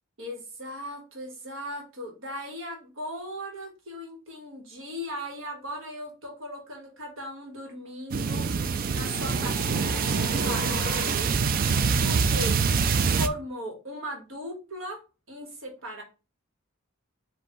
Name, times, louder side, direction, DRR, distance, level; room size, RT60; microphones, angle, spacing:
voice 1, 0.2-11.4 12.0-12.6 13.2-15.0 15.3-16.0, equal, 65° right, 2 dB, 1.5 m, -38 dB
sound 1, 8.1-13.3, right 5 dB, 45° right, 0.3 m, -25 dB
sound 2, 8.7-11.4, left 3 dB, 45° left, 0.6 m, -37 dB
4.5 x 2.6 x 3.8 m, 0.31 s
head